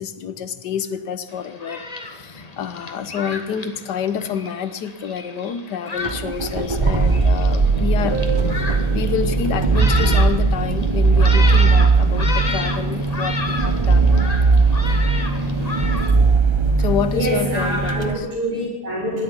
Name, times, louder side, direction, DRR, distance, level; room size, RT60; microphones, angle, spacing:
voice 1, 0.0-8.2 8.9-14.1 16.8-18.3, left 7 dB, 75° left, 12 dB, 1.6 m, -28 dB
Thunderstorm, 1.3-16.1, left 3 dB, 25° left, 1.4 m, -31 dB
sound 1, 6.0-18.1, right 4 dB, 25° right, 0.6 m, -18 dB
voice 2, 8.1-8.5 16.8-16.9 17.1-19.2, right 1 dB, 55° right, -6 dB, 7.4 m, -25 dB
17.0 x 12.0 x 5.6 m, 0.96 s
omnidirectional pair, 1.8 m